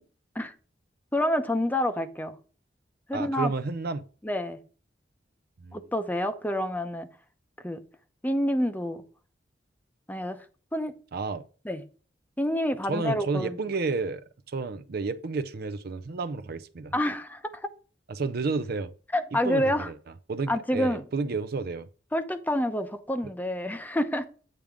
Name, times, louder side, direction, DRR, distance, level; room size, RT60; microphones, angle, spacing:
voice 1, 1.1-2.4 3.1-3.5 4.2-4.6 5.7-7.1 7.6-7.8 8.2-9.0 10.1-10.4 10.7-10.9 11.6-11.8 12.4-13.6 16.9-17.7 19.1-19.9 20.5-21.0 22.1-24.3, left 1 dB, 10° left, 0.7 m, -28 dB
voice 2, 3.1-4.0 5.6-5.8 11.1-11.4 12.9-16.9 18.1-18.9 19.4-19.9 20.3-21.9, right 4 dB, 60° right, 0.5 m, -31 dB
8.9 x 3.6 x 5.0 m
head